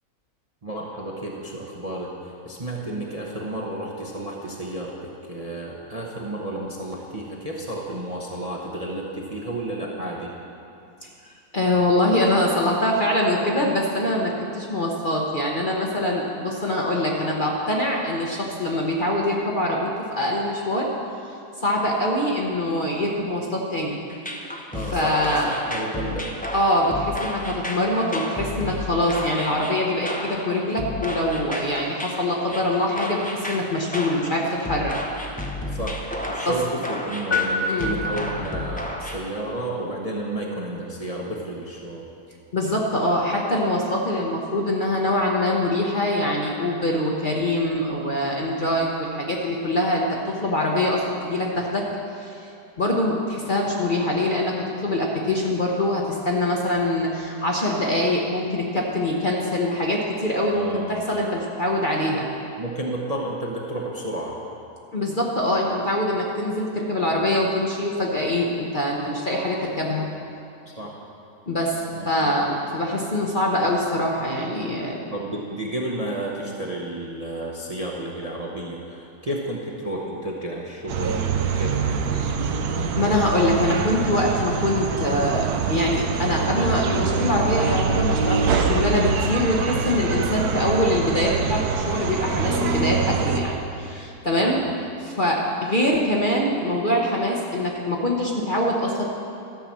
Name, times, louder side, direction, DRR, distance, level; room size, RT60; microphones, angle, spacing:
voice 1, 0.6-2.1 2.4-10.3 24.7-25.4 25.7-26.3 35.7-42.0 60.5-61.1 62.6-64.4 70.7-71.0 71.9-72.4 75.1-82.5 94.4-94.6, right 1 dB, 30° right, -3 dB, 0.7 m, -31 dB
voice 2, 11.5-20.9 21.2-24.0 24.8-25.5 26.5-34.9 36.4-36.5 37.7-38.0 42.5-51.8 52.1-62.3 64.9-70.0 71.5-75.0 83.0-94.6 95.0-99.0, left 1 dB, 40° left, -2 dB, 0.9 m, -24 dB
sound 1, 24.1-39.2, left 1 dB, 10° left, 0.4 m, -32 dB
sound 2, 37.3-38.8, left 2 dB, 70° left, 2.3 m, -27 dB
sound 3, 80.9-93.4, right 5 dB, 70° right, 1.2 m, -24 dB
13.0 x 5.7 x 7.3 m, 2.7 s
omnidirectional pair, 1.7 m